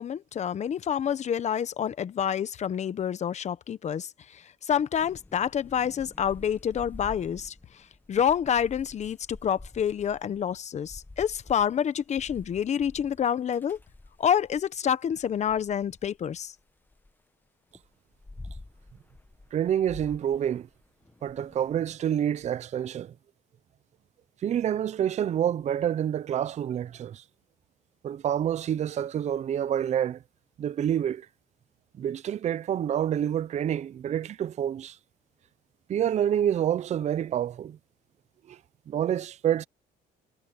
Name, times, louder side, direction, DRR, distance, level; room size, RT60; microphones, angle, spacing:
voice 1, 0.0-13.8 14.2-16.5, left 8 dB, 40° left, 1.1 m, -28 dB
Thunder / Rain, 5.0-14.7 15.1-17.1 17.7-22.5, left 2 dB, 10° left, 1.2 m, -48 dB
voice 2, 19.5-20.7 21.2-23.1 24.4-27.2 28.0-30.2 30.6-31.3 32.0-35.0 35.9-37.8 38.5-38.6 38.9-39.6, right 10 dB, 40° right, 0.6 m, -27 dB
cardioid pair, 110°, 17 cm